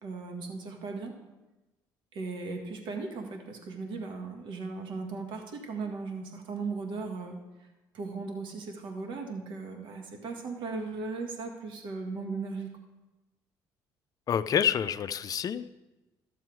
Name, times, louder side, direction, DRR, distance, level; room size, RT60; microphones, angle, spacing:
voice 1, 0.0-1.1 2.1-7.4 7.9-12.7, right 4 dB, 70° right, 3 dB, 1.6 m, -37 dB
voice 2, 14.3-15.7, left 8 dB, 45° left, 13 dB, 0.5 m, -28 dB
12.5 x 7.0 x 4.7 m, 1.1 s
cardioid pair, 100°, 9 cm